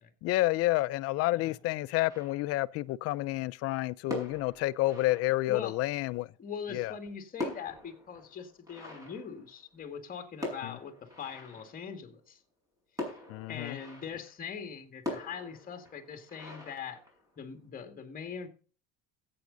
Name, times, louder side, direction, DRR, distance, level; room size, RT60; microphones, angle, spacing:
voice 1, 0.2-6.3 6.7-6.9 10.6-10.8 13.3-13.8, left 18 dB, 55° left, 0.6 m, -29 dB
sound 1, 2.1-2.8 3.9-5.8 6.8-10.0 10.4-12.0 13.0-14.4 15.0-17.6, left 2 dB, 10° right, 6.3 m, -43 dB
voice 2, 6.4-12.4 13.5-17.0 17.4-18.5, left 7 dB, 30° left, 2.1 m, -42 dB
14.0 x 8.6 x 4.0 m
supercardioid pair, 125°, 29 cm